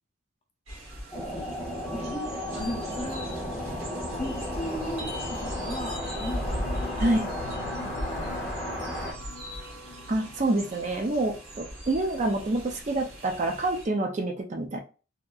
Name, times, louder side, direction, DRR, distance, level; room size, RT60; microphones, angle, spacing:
sound 1, 0.7-13.8, equal, 90° right, 1.5 m, -39 dB
sound 2, 1.1-9.1, left 1 dB, ahead, 1.4 m, -34 dB
voice 1, 1.9-3.3 3.6-6.8 7.8-8.4, left 1 dB, 30° left, 1 dB, 0.8 m, -37 dB
sound 3, 6.4-10.9, left 4 dB, 60° left, 0.4 m, -44 dB
voice 2, 7.0-7.3 10.1-14.8, right 2 dB, 35° right, 2 dB, 0.4 m, -27 dB
3.5 x 2.7 x 2.3 m, 0.35 s
head